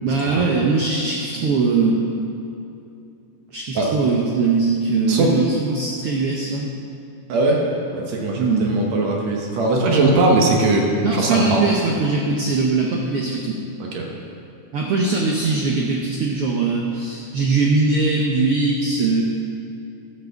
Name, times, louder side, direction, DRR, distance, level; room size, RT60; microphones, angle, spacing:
voice 1, 0.0-2.0 3.5-6.7 8.4-8.8 11.0-13.6 14.7-19.2, right 3 dB, 90° right, -1 dB, 1.2 m, -21 dB
voice 2, 7.3-7.7 7.9-10.9 11.1-11.6 13.8-14.1, right 2 dB, 60° right, -1 dB, 2.2 m, -20 dB
12.0 x 6.0 x 7.0 m, 2.6 s
omnidirectional pair, 3.8 m